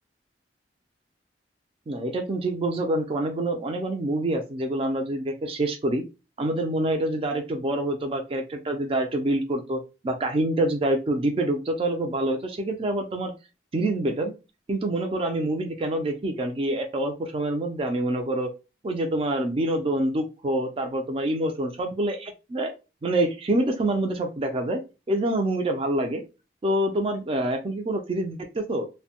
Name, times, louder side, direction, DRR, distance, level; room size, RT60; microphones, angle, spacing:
voice 1, 1.9-6.0 6.4-13.3 13.7-14.3 14.7-18.5 18.8-22.7 23.0-24.8 25.1-26.2 26.6-28.9, right 1 dB, 30° right, 4 dB, 0.4 m, -26 dB
2.6 x 2.1 x 2.8 m, 0.28 s
head